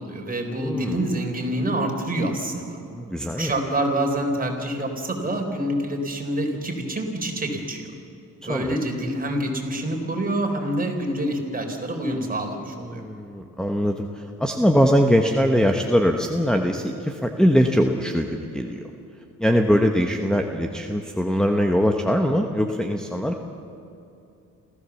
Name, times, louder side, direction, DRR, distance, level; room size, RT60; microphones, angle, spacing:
voice 1, 0.0-2.8 3.4-7.9 8.4-13.0, right 1 dB, 25° right, 2 dB, 4.0 m, -26 dB
voice 2, 0.6-1.0 2.9-3.5 8.5-8.8 12.9-18.8 19.4-23.4, equal, ahead, 4 dB, 1.1 m, -22 dB
27.5 x 15.0 x 7.2 m, 2.7 s
cardioid pair, 95°, 31 cm